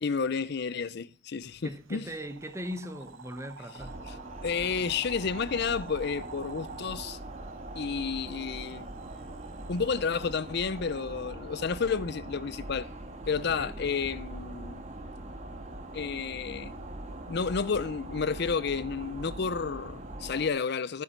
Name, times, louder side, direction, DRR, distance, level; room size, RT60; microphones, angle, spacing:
voice 1, 0.0-2.1 4.4-7.2 7.8-8.9 9.7-12.9 13.3-14.8 15.9-16.7 17.3-21.0, left 5 dB, 55° left, 0.5 m, -31 dB
sound 1, 1.4-11.3, right 5 dB, 80° right, 1.0 m, -50 dB
voice 2, 1.6-4.0 13.5-13.8, equal, 15° right, 1.0 m, -40 dB
sound 2, 3.8-20.5, right 1 dB, 35° right, 1.7 m, -42 dB
14.0 x 8.3 x 4.5 m
head